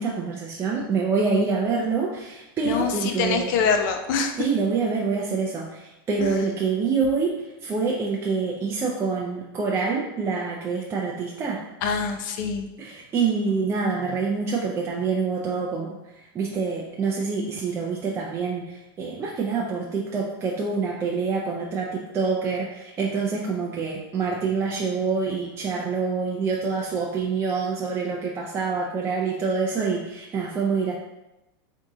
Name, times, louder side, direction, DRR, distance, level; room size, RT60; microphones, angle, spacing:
voice 1, 0.0-3.5 4.4-11.6 12.8-30.9, right 4 dB, 20° right, -3 dB, 0.4 m, -26 dB
voice 2, 3.2-4.3 6.2-6.3 11.8-12.7, left 5 dB, 55° left, 5 dB, 0.5 m, -24 dB
3.5 x 2.7 x 3.7 m, 0.97 s
supercardioid pair, 135°, 13 cm